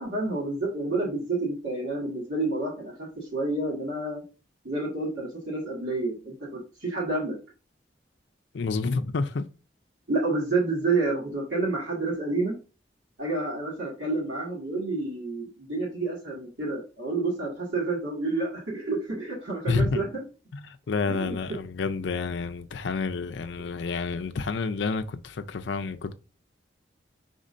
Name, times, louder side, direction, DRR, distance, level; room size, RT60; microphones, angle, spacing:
voice 1, 0.0-4.2 4.6-7.4 10.1-12.6 13.2-20.2 21.1-21.3, right 3 dB, 70° right, 1.8 m, -29 dB
voice 2, 8.5-9.5 19.7-20.0 20.5-26.1, left 4 dB, 75° left, 0.4 m, -29 dB
5.3 x 3.7 x 2.5 m
head